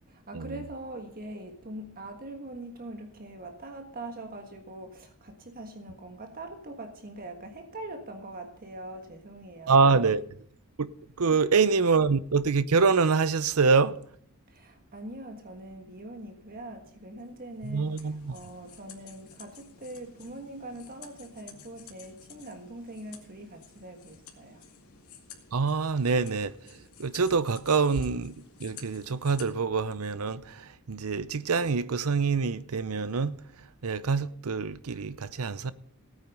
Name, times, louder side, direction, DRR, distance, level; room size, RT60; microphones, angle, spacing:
voice 1, 0.1-10.0 11.2-11.4 14.5-24.6, right 1 dB, 40° right, 1.5 m, -42 dB
voice 2, 9.7-10.2 10.8-10.9 11.2-14.0 17.6-18.4 25.5-28.3 28.6-33.4 33.8-35.7, right 4 dB, 75° right, 0.7 m, -25 dB
sound 1, 17.2-29.5, left 8 dB, 70° left, 2.3 m, -52 dB
17.0 x 9.3 x 5.4 m
head